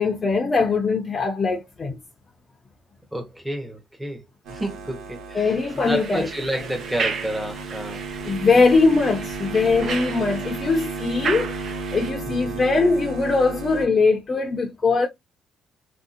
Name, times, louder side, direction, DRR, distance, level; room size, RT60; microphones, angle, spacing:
voice 1, 0.0-2.0 5.3-6.3 8.2-11.6 11.9-15.1, left 4 dB, 30° left, 0.6 m, -21 dB
voice 2, 3.1-4.2 4.5-5.4 5.9-8.0 12.2-12.6, right 1 dB, 5° right, 0.9 m, -30 dB
sound 1, 4.4-13.9, right 3 dB, 90° right, 1.1 m, -34 dB
sound 2, 5.6-12.1, right 5 dB, 50° right, 0.6 m, -34 dB
3.4 x 2.7 x 2.5 m
cardioid pair, 105°, 0 cm